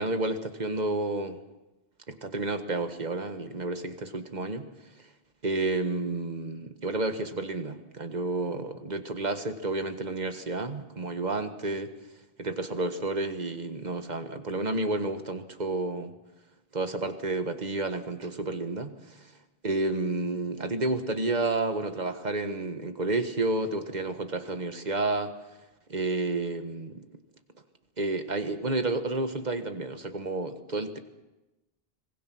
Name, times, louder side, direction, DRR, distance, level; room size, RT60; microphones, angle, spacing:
voice 1, 0.0-1.4 2.1-4.7 5.4-11.9 12.4-16.1 16.7-19.3 19.6-25.3 25.9-27.1 28.0-31.0, right 2 dB, 40° right, 8 dB, 1.6 m, -30 dB
26.0 x 20.0 x 6.2 m, 1.0 s
omnidirectional pair, 1.1 m